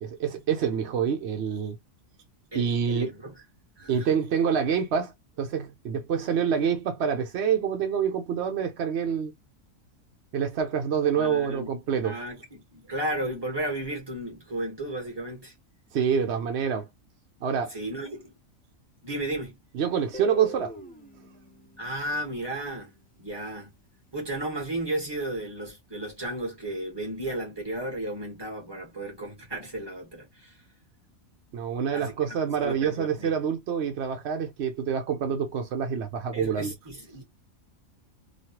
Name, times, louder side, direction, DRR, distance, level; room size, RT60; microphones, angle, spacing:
voice 1, 0.0-1.8 2.5-3.1 3.9-5.1 5.4-9.3 10.3-12.1 15.9-16.9 17.4-17.7 19.7-20.7 31.5-36.7, right 7 dB, 60° right, 0.8 m, -27 dB
voice 2, 2.5-3.3 3.8-4.2 11.2-11.7 12.0-15.5 17.7-18.3 19.0-19.6 21.8-22.9 23.2-23.7 24.1-30.6 31.9-33.3 36.3-37.2, right 1 dB, 20° right, 1.3 m, -34 dB
Guitar, 20.1-23.1, equal, 10° left, 0.5 m, -44 dB
3.1 x 2.3 x 2.9 m
omnidirectional pair, 1.4 m